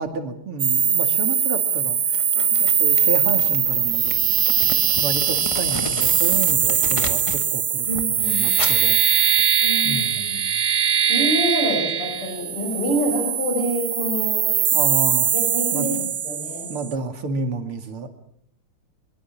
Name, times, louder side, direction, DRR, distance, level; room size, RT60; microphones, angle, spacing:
voice 1, 0.0-2.2 2.5-4.1 5.0-9.2 9.8-10.7 14.7-15.3 15.7-16.1 16.7-18.1, right 4 dB, 85° right, 7 dB, 3.3 m, -31 dB
sound 1, 0.6-16.9, right 8 dB, 55° right, 1.7 m, -21 dB
Crumpling crinkling, 2.1-7.5 7.8-9.8, left 2 dB, 15° left, 1.7 m, -35 dB
voice 2, 7.9-8.5 9.6-10.4 11.1-14.5 15.3-16.0 16.2-16.7, equal, 85° left, 1 dB, 7.4 m, -26 dB
23.5 x 22.5 x 7.3 m, 0.67 s
omnidirectional pair, 2.4 m